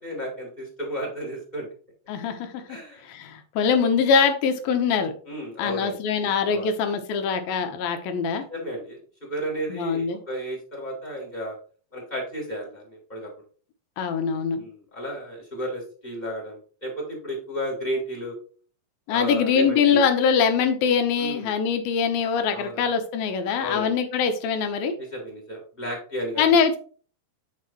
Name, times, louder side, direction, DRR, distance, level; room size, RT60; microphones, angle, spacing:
voice 1, 0.0-1.7 2.7-3.1 3.6-3.8 5.3-6.7 8.5-11.6 11.9-13.3 14.5-18.3 19.1-20.0 21.2-21.5 22.5-22.9 23.6-23.9 25.0-26.6, equal, 10° left, -2 dB, 3.0 m, -33 dB
voice 2, 2.1-2.8 3.0-5.1 5.6-8.4 9.7-10.2 14.0-14.6 19.1-24.9 26.4-26.8, left 6 dB, 90° left, 7 dB, 2.8 m, -23 dB
9.5 x 4.8 x 3.0 m, 0.42 s
omnidirectional pair, 4.1 m